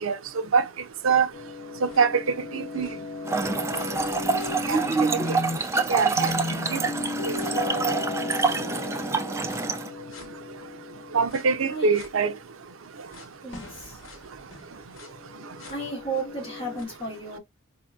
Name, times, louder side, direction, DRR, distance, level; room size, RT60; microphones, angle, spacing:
voice 1, 0.0-0.6 1.0-1.3 1.8-2.9 4.7-5.4 5.9-6.3 6.7-6.8 11.1-12.3, right 5 dB, 80° right, 0.5 m, -24 dB
sound 1, 1.3-5.7 6.2-12.1 13.1-13.2 13.5-16.8, left 3 dB, 70° left, 1.0 m, -36 dB
Trickle dribble / Fill (with liquid), 3.2-9.9, right 4 dB, 15° right, 0.3 m, -26 dB
voice 2, 13.4-14.0 15.7-17.4, right 2 dB, 25° left, 1.9 m, -33 dB
4.3 x 2.7 x 2.3 m
head